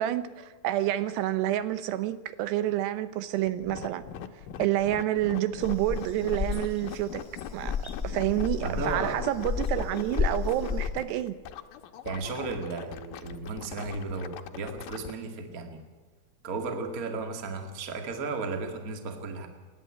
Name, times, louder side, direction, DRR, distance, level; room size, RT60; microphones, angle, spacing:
voice 1, 0.0-4.0 4.6-7.2 7.5-7.7 8.0-11.3, right 13 dB, 80° right, 2.9 m, -28 dB
sound 1, 3.5-15.1, left 11 dB, 75° left, 2.1 m, -40 dB
sound 2, 5.6-10.9, left 6 dB, 20° left, 0.5 m, -32 dB
voice 2, 8.6-9.1 12.0-15.8 16.4-19.5, right 4 dB, 35° right, 1.4 m, -34 dB
28.5 x 11.0 x 8.7 m
omnidirectional pair, 4.9 m